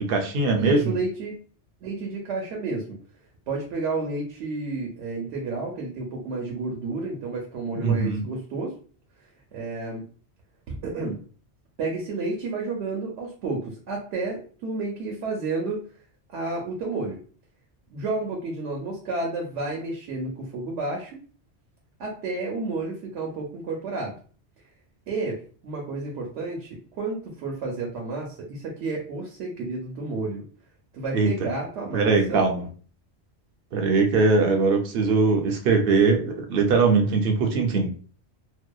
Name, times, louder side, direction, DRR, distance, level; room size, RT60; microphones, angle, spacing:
voice 1, 0.0-0.9 7.7-8.2 31.1-31.3 31.9-32.6 33.7-37.9, right 4 dB, 60° right, 3 dB, 0.7 m, -21 dB
voice 2, 0.5-1.3 1.8-3.0 3.5-8.8 9.5-10.0 10.7-11.2 11.8-15.8 16.3-17.2 17.9-21.2 22.0-24.2 25.1-30.4 30.9-32.4, right 3 dB, 85° right, 0 dB, 0.9 m, -31 dB
2.7 x 2.1 x 2.2 m, 0.42 s
omnidirectional pair, 1.2 m